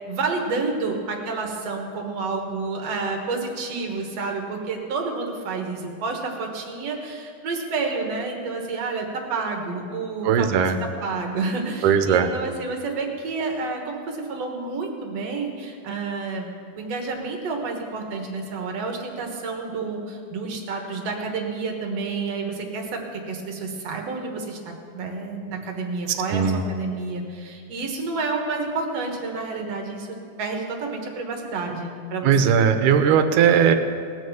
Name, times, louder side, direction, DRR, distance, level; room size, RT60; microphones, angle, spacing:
voice 1, 0.1-30.1 30.4-32.6, right 3 dB, 60° right, 2 dB, 2.3 m, -29 dB
voice 2, 10.2-10.8 11.8-12.3 26.3-26.6 32.2-33.7, right 7 dB, 85° right, 8 dB, 2.3 m, -18 dB
19.0 x 6.5 x 7.1 m, 2.3 s
omnidirectional pair, 3.6 m